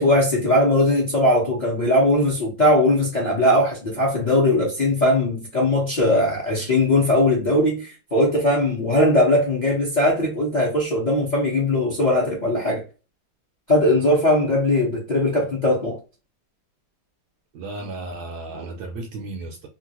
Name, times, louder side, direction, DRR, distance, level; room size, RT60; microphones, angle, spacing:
voice 1, 0.0-12.8 13.7-16.0, left 1 dB, 35° left, 0.7 m, -19 dB
voice 2, 17.5-19.7, right 2 dB, 70° right, 1.0 m, -34 dB
3.1 x 2.5 x 2.9 m
omnidirectional pair, 2.1 m